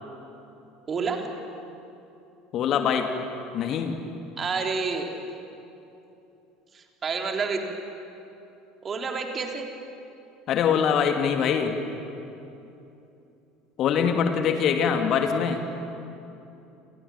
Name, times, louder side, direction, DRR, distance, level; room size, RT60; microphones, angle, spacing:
voice 1, 0.9-1.3 4.4-5.1 6.7-7.6 8.8-9.7, right 5 dB, 30° right, 3 dB, 3.7 m, -29 dB
voice 2, 2.5-3.1 3.5-4.0 10.5-11.8 13.8-15.7, left 7 dB, 45° left, 5 dB, 2.3 m, -23 dB
29.0 x 28.5 x 7.2 m, 2.9 s
figure-of-eight pair, 65°, 0 cm